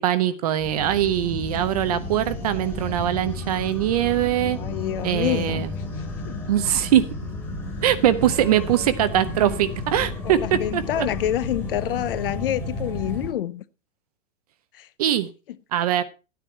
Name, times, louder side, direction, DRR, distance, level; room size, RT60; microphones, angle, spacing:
voice 1, 0.0-4.6 5.0-5.7 6.5-7.1 7.8-11.1 15.0-15.3 15.7-16.0, right 11 dB, 30° right, 0.6 m, -22 dB
sound 1, 0.6-13.3, left 2 dB, 5° left, 1.8 m, -32 dB
voice 2, 4.6-5.6 6.3-6.4 10.2-13.6 14.7-14.9, left 12 dB, 45° left, 0.7 m, -27 dB
13.0 x 9.3 x 4.4 m
supercardioid pair, 170°, 39 cm